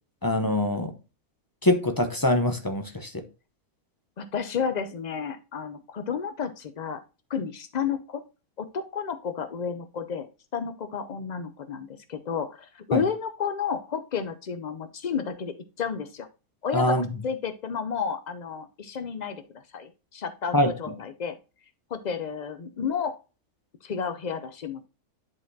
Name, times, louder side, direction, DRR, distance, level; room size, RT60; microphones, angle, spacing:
voice 1, 0.2-0.9 1.6-3.2 12.9-13.0 16.7-17.0 20.5-20.7, left 1 dB, 25° left, 0.4 m, -23 dB
voice 2, 4.2-7.0 7.3-8.2 8.6-10.3 10.5-16.3 16.6-17.0 17.2-19.4 19.7-21.4 21.9-23.2 23.8-24.9, left 6 dB, 90° left, 0.3 m, -31 dB
10.5 x 4.0 x 2.7 m
omnidirectional pair, 1.5 m